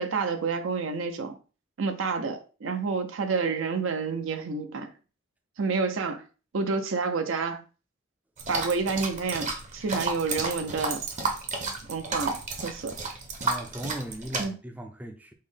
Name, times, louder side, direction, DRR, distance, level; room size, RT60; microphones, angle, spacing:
voice 1, 0.0-1.4 1.8-4.9 5.6-6.2 6.5-7.6 8.5-11.0 11.9-12.4 12.6-12.9 14.4-14.5, right 4 dB, 85° right, 0.6 m, -29 dB
sound 1, 8.4-14.4, right 3 dB, 35° right, 0.7 m, -32 dB
voice 2, 13.4-15.3, right 1 dB, 10° right, 0.3 m, -37 dB
5.5 x 2.1 x 3.3 m
head